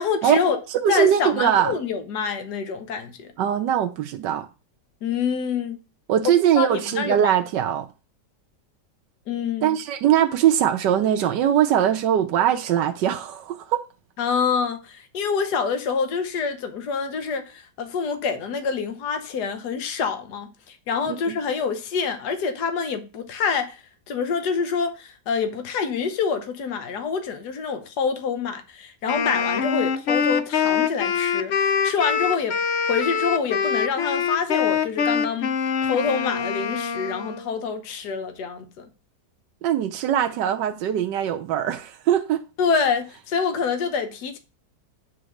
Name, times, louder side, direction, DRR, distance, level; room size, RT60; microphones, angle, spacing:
voice 1, 0.0-0.6 0.9-3.3 5.0-5.8 6.6-7.3 9.3-9.8 14.2-32.6 32.9-35.5 35.8-38.9 42.6-44.4, left 5 dB, 70° left, 1.6 m, -26 dB
voice 2, 0.7-1.8 3.4-4.5 6.1-7.9 9.6-13.8 21.1-21.3 39.6-42.4, right 10 dB, 85° right, 1.4 m, -21 dB
Wind instrument woodwind instrument, 29.1-37.5, left 6 dB, 85° left, 0.5 m, -24 dB
9.0 x 3.8 x 6.4 m
omnidirectional pair, 1.9 m